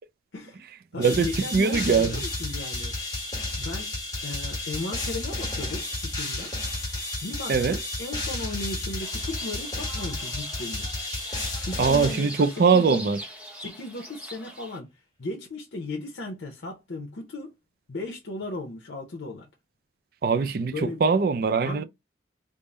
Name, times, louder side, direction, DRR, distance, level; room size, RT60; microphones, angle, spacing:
voice 1, 0.3-0.6 0.9-2.9 3.6-3.9 4.2-6.5 7.2-10.9 11.7-13.0 13.6-17.5 17.9-19.5 20.7-21.0 21.6-21.8, left 2 dB, 80° left, 0.7 m, -36 dB
sound 1, 1.0-12.9, left 2 dB, 20° left, 1.3 m, -32 dB
voice 2, 1.0-2.2 7.5-7.8 11.8-13.2 20.2-21.8, right 5 dB, 50° right, 0.3 m, -22 dB
sound 2, 9.0-14.8, equal, 5° right, 0.7 m, -42 dB
3.6 x 2.0 x 3.9 m
head